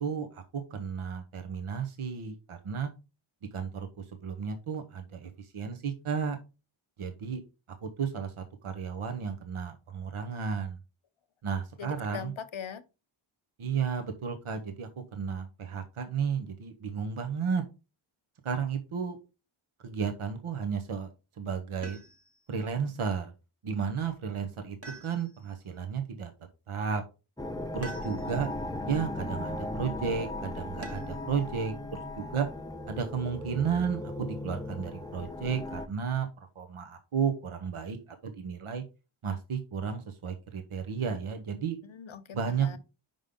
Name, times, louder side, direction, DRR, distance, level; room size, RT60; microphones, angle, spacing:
voice 1, 0.0-2.9 3.5-6.4 7.0-7.4 7.8-10.8 11.4-12.3 13.6-17.6 18.4-19.2 19.8-21.1 21.4-22.0 22.5-23.3 23.6-26.3 26.7-27.0 27.7-28.5 28.9-32.5 32.9-38.8 39.2-41.8 42.3-42.8, right 6 dB, 75° right, 1.0 m, -33 dB
voice 2, 11.8-12.8 41.8-42.8, left 7 dB, 65° left, 0.8 m, -41 dB
sound 1, 21.8-22.5 24.8-25.6 27.8-28.5 30.8-31.3 33.0-33.7, right 3 dB, 30° right, 1.3 m, -46 dB
sound 2, 27.4-35.9, left 2 dB, 10° left, 0.7 m, -37 dB
5.4 x 5.2 x 3.6 m
wide cardioid pair, 90°, 50 cm